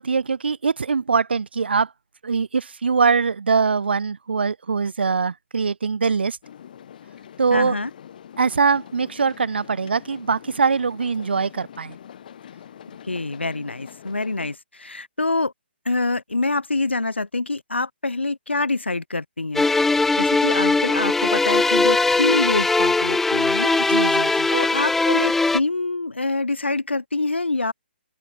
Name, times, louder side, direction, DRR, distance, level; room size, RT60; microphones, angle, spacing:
voice 1, 0.0-1.9 2.2-6.4 7.4-7.8 8.4-12.0 23.8-24.5, right 5 dB, 65° right, 4.1 m, -22 dB
sound 1, 6.4-14.6, left 9 dB, 50° left, 5.9 m, -44 dB
voice 2, 7.5-7.9 13.1-15.5 15.8-19.6 20.2-23.8 24.5-27.7, left 3 dB, 80° left, 5.1 m, -25 dB
sound 2, 19.5-25.6, left 3 dB, 5° left, 0.5 m, -20 dB
open air
figure-of-eight pair, 130°, 6 cm